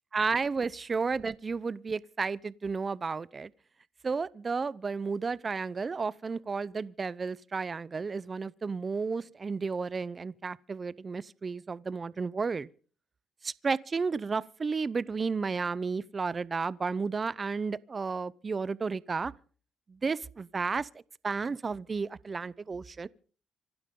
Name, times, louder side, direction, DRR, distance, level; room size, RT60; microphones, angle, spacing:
voice 1, 0.1-3.5 4.0-12.7 13.4-19.3 19.9-20.9 21.2-23.1, right 4 dB, 35° right, 0.7 m, -32 dB
26.5 x 12.0 x 3.8 m
cardioid pair, 90°, 0 cm